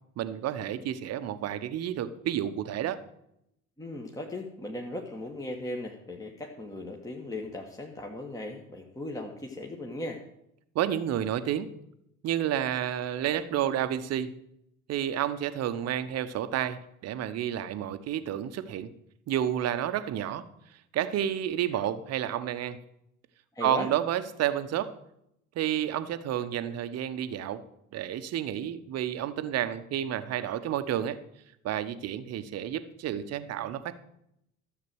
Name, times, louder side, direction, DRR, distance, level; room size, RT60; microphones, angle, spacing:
voice 1, 0.2-3.0 10.7-11.7 12.2-14.3 14.9-18.9 19.3-20.4 20.9-22.8 23.6-24.9 25.5-27.6 27.9-31.2 31.6-33.9, right 10 dB, 40° right, 12 dB, 1.0 m, -30 dB
voice 2, 3.8-10.2 23.5-23.9, left 1 dB, 10° left, 1 dB, 1.4 m, -37 dB
13.5 x 7.6 x 6.2 m, 0.78 s
figure-of-eight pair, 65°, 41 cm